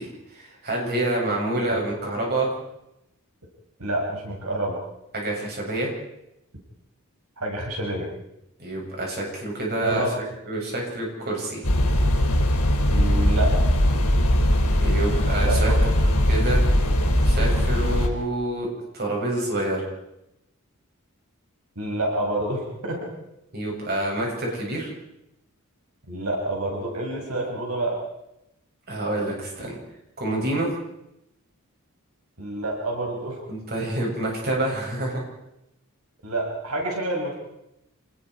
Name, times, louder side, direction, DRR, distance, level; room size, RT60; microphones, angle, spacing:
voice 1, 0.3-2.5 5.1-5.9 8.6-10.0 10.5-11.6 14.8-15.7 16.0-16.6 17.2-18.7 18.9-19.9 23.5-24.9 28.9-29.8 30.2-30.7 33.5-35.2, right 1 dB, 50° right, -2 dB, 7.6 m, -27 dB
voice 2, 3.8-4.8 7.4-8.1 9.8-10.1 12.9-13.5 15.4-15.8 21.8-23.1 26.1-28.0 32.4-33.4 36.2-37.4, right 1 dB, 85° right, -1 dB, 5.8 m, -28 dB
sound 1, 11.6-18.1, equal, 90° left, 4.9 m, -20 dB
27.5 x 20.0 x 4.8 m, 0.84 s
head